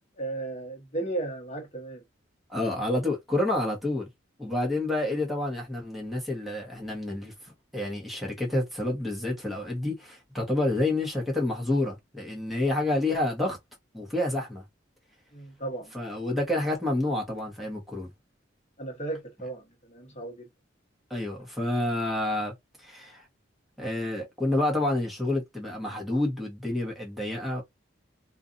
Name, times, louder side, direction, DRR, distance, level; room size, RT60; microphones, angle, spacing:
voice 1, 0.2-2.0 4.5-4.6 15.3-15.9 16.3-16.4 18.8-20.5, right 2 dB, 35° left, 1.0 m, -35 dB
voice 2, 2.5-4.1 4.4-7.3 7.7-13.6 13.9-14.6 15.9-18.1 21.1-22.5 22.8-23.2 23.8-27.6, left 1 dB, ahead, 1.1 m, -29 dB
2.5 x 2.5 x 2.5 m
head